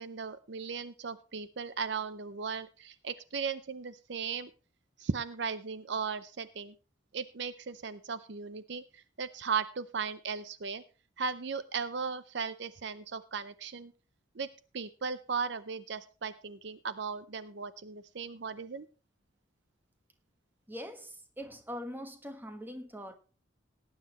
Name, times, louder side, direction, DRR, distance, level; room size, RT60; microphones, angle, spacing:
voice 1, 0.0-4.5 5.0-6.7 7.1-10.8 11.2-13.9 14.3-14.5 14.7-18.9, right 5 dB, 60° right, 0.6 m, -37 dB
voice 2, 20.7-23.2, equal, 10° right, 1.4 m, -42 dB
18.5 x 9.7 x 3.1 m
head